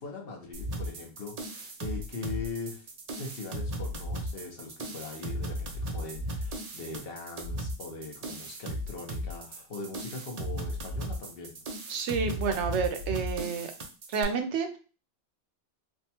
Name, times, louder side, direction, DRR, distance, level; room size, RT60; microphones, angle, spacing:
voice 1, 0.0-2.9 3.2-11.6, left 3 dB, 55° left, 1 dB, 1.0 m, -41 dB
sound 1, 0.5-14.2, equal, 50° right, 0.5 m, -36 dB
voice 2, 11.9-13.7 14.1-14.8, right 5 dB, 75° right, 6 dB, 0.9 m, -29 dB
3.5 x 2.2 x 2.8 m, 0.35 s
omnidirectional pair, 1.2 m